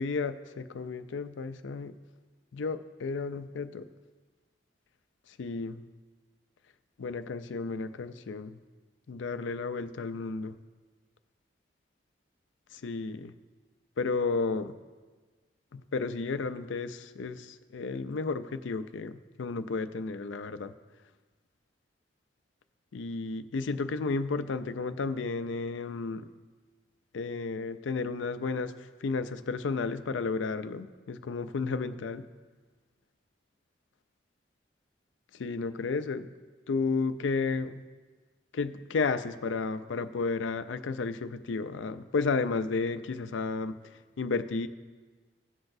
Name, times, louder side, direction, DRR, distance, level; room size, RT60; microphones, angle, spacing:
voice 1, 0.0-1.9 2.5-3.9 5.4-5.8 7.0-8.6 9.1-10.6 12.7-13.3 14.0-14.8 15.7-20.7 22.9-26.3 27.1-28.7 29.0-32.3 35.3-36.3 36.7-37.8 38.5-43.7 44.2-44.7, left 4 dB, 80° left, 11 dB, 0.4 m, -32 dB
17.0 x 5.9 x 2.6 m, 1.4 s
head